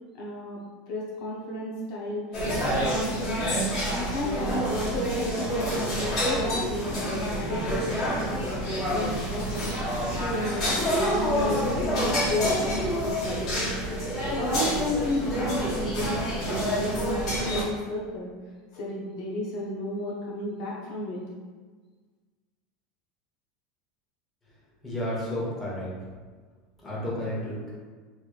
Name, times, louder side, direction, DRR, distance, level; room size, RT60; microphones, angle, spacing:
voice 1, 0.1-0.6 0.9-2.2 2.6-3.5 3.9-8.5 8.9-9.7 10.1-13.7 14.3-18.3 18.7-21.2, left 1 dB, 55° left, -4 dB, 0.6 m, -33 dB
sound 1, 2.3-17.6, equal, 40° left, 1.2 m, -28 dB
voice 2, 24.8-25.9 26.8-27.7, left 1 dB, 15° left, -7 dB, 0.9 m, -31 dB
3.1 x 3.0 x 2.3 m, 1.4 s
supercardioid pair, 155°, 0 cm